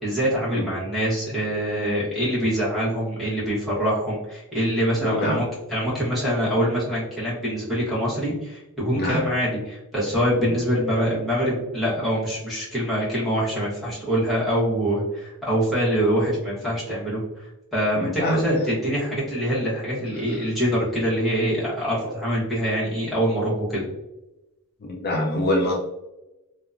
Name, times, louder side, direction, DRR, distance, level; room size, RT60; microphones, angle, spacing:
voice 1, 0.0-17.2 17.7-23.9, equal, ahead, -9 dB, 1.1 m, -24 dB
voice 2, 5.0-5.4 9.0-9.2 18.0-18.4 20.3-20.4 24.9-25.7, left 1 dB, 45° left, 0 dB, 0.4 m, -24 dB
2.7 x 2.2 x 2.4 m, 0.98 s
head